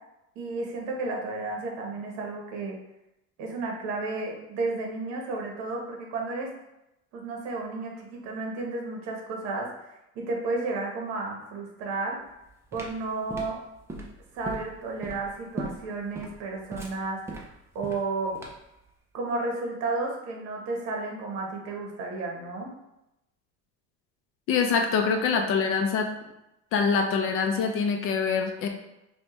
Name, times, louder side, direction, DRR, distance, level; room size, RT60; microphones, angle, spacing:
voice 1, 0.3-2.8 3.4-6.5 7.1-12.2 12.7-13.6 14.3-18.3 19.1-22.7, right 3 dB, 60° right, 0 dB, 1.0 m, -32 dB
sound 1, 12.3-18.8, right 2 dB, 10° right, 0.4 m, -39 dB
voice 2, 24.5-26.1 26.7-28.7, left 5 dB, 45° left, 4 dB, 0.5 m, -24 dB
5.2 x 2.3 x 3.0 m, 0.89 s
cardioid pair, 155°, 30 cm